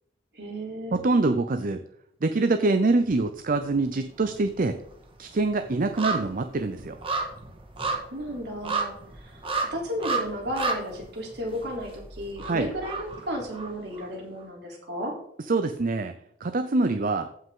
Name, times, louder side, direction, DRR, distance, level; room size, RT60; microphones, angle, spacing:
voice 1, 0.3-1.0 7.8-15.1, equal, 70° right, -1 dB, 3.3 m, -34 dB
voice 2, 0.9-1.8 2.2-4.8 5.2-7.0 12.4-12.7 15.5-16.2 16.4-17.3, right 3 dB, 50° right, 8 dB, 0.6 m, -25 dB
sound 1, 3.0-3.8 4.1-14.1 14.4-14.5, right 3 dB, 30° right, 1.7 m, -33 dB
15.0 x 5.7 x 3.8 m, 0.70 s
head